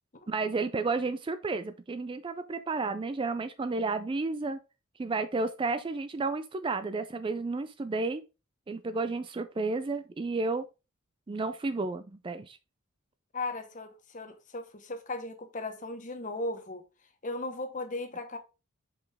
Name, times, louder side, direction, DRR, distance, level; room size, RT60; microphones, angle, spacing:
voice 1, 0.3-4.6 5.0-8.2 8.7-10.7 11.3-12.6, right 3 dB, 25° right, 0.3 m, -32 dB
voice 2, 13.3-16.8 17.2-18.4, left 2 dB, 35° left, 1.0 m, -37 dB
6.1 x 5.4 x 3.4 m
head